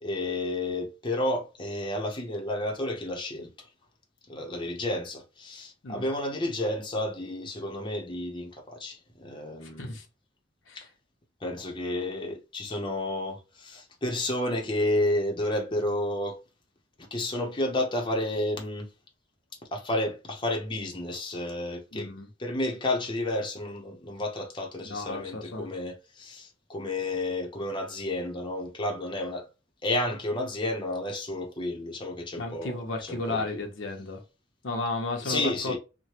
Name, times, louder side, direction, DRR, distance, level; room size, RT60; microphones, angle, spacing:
voice 1, 0.0-3.7 4.3-10.0 10.7-10.9 11.4-16.4 17.0-18.9 19.7-22.1 22.4-29.4 29.8-33.6 35.2-35.8, left 1 dB, 25° left, 0.7 m, -31 dB
voice 2, 9.6-10.0 10.7-10.9 21.9-22.3 24.8-25.7 32.4-34.2 34.6-35.8, left 2 dB, 85° left, 0.9 m, -33 dB
3.1 x 2.2 x 2.8 m
head